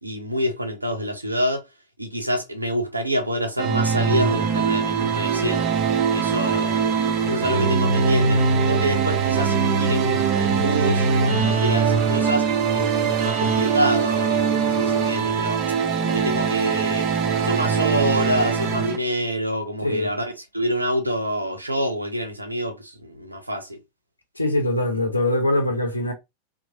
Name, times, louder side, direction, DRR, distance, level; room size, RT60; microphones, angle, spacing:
voice 1, 0.0-1.6 2.0-5.8 6.1-6.9 7.2-8.4 8.7-12.5 12.7-15.6 16.0-17.0 17.4-23.8, equal, 85° right, 0.7 m, -27 dB
sound 1, 3.6-19.0, right 5 dB, 40° right, 0.6 m, -22 dB
voice 2, 19.8-20.1 24.4-26.1, left 1 dB, 80° left, 0.7 m, -22 dB
3.0 x 2.1 x 2.7 m
figure-of-eight pair, 90°, 0 cm